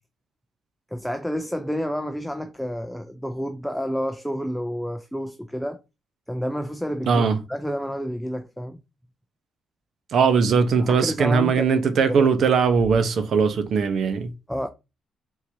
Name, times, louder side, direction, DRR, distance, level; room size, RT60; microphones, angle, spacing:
voice 1, 0.9-5.8 6.3-7.2 7.5-8.8 10.8-11.7 12.1-12.3 14.5-14.7, equal, ahead, 0.4 m, -29 dB
voice 2, 7.1-7.4 10.1-14.3, right 5 dB, 60° right, 0.8 m, -20 dB
4.5 x 3.8 x 2.8 m
cardioid pair, 90°, 0 cm